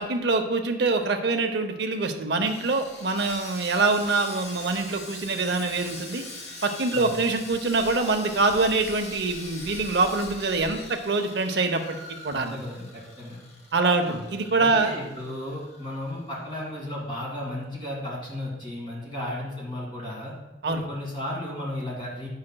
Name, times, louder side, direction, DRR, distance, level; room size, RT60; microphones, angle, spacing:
voice 1, 0.0-6.2 6.6-12.0 12.2-12.6 13.7-14.9 20.6-20.8, right 3 dB, 60° right, 6 dB, 0.6 m, -25 dB
Sawing, 2.4-16.7 16.9-17.1 17.6-17.7, left 2 dB, 55° left, 1.2 m, -43 dB
voice 2, 12.3-13.4 14.1-14.2 14.6-20.3 20.7-22.3, left 1 dB, 25° left, -5 dB, 2.1 m, -34 dB
8.6 x 5.7 x 2.2 m, 1.1 s
head